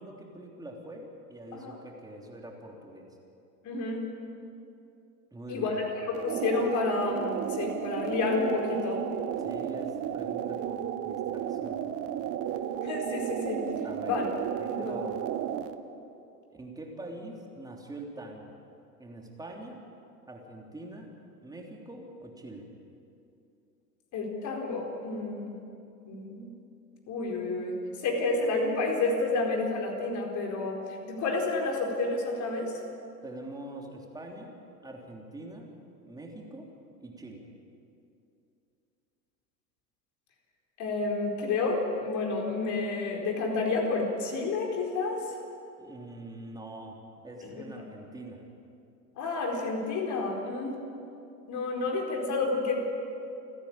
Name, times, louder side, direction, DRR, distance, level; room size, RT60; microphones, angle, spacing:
voice 1, 0.0-3.1 5.3-5.8 9.4-12.2 13.8-14.2 14.6-15.4 16.5-18.5 19.0-19.8 20.3-21.1 21.4-22.7 33.2-34.6 34.8-35.7 36.0-36.7 37.0-37.4 45.8-48.4, right 1 dB, 5° right, 0 dB, 3.2 m, -44 dB
voice 2, 3.6-4.0 5.5-9.0 12.8-13.7 14.0-14.3 14.7-14.8 24.1-25.5 26.0-26.6 27.1-32.7 40.8-45.2 47.4-47.6 49.2-50.8 51.5-52.7, left 3 dB, 35° left, 1 dB, 4.5 m, -30 dB
sound 1, 6.1-15.7, right 10 dB, 30° right, 1.0 m, -33 dB
29.5 x 10.5 x 8.9 m, 2.7 s
hypercardioid pair, 100°, 50 cm